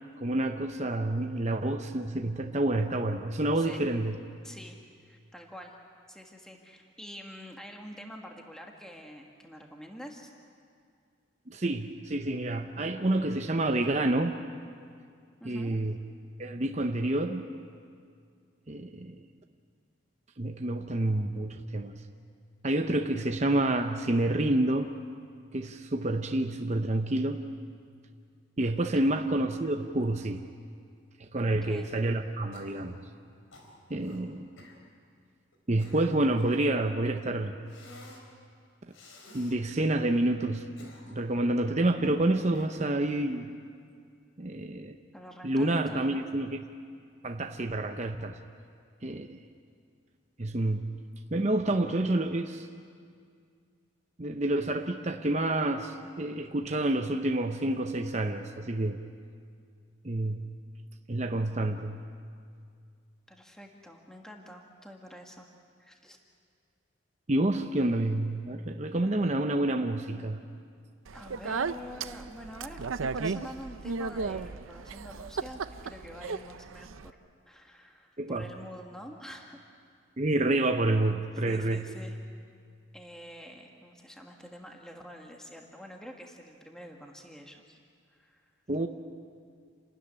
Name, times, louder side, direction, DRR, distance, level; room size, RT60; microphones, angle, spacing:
voice 1, 0.2-4.1 11.5-14.4 15.4-16.0 16.4-17.5 18.7-19.2 20.4-22.0 22.6-24.9 25.5-27.4 28.6-30.4 31.2-33.0 33.9-34.5 35.7-37.5 39.3-43.5 44.4-45.0 45.4-46.6 47.2-48.4 49.0-49.4 50.4-51.0 51.3-52.7 54.2-59.0 60.0-60.5 61.1-62.0 67.3-70.4 78.2-78.5 80.2-81.9 88.7-88.9, right 1 dB, 35° right, 5 dB, 0.8 m, -28 dB
voice 2, 4.4-5.8 6.1-10.3 15.4-15.8 28.8-29.3 31.4-31.9 45.1-46.3 63.3-65.5 65.8-66.2 71.1-72.9 73.1-77.2 77.5-79.6 81.5-82.2 82.9-87.8 88.1-88.4, equal, 5° left, 1 dB, 1.6 m, -47 dB
Cough, 32.5-33.0 33.5-34.2 34.6-34.8 35.5-36.7 37.7-38.3 38.9-39.6 40.5-41.4 42.5-43.0, left 1 dB, 85° left, 4.2 m, -52 dB
Speech, 71.1-77.1, right 4 dB, 90° right, 0.6 m, -35 dB
28.5 x 13.5 x 10.0 m, 2.2 s
head